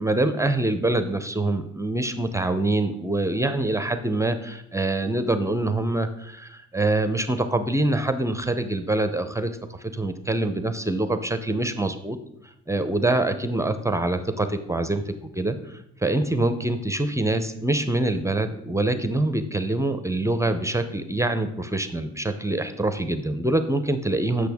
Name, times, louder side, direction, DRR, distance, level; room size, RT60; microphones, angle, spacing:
voice 1, 0.0-9.5 9.8-12.2 12.7-24.5, right 2 dB, 10° right, 9 dB, 0.5 m, -25 dB
7.9 x 6.4 x 3.5 m, 0.80 s
cardioid pair, 90°, 30 cm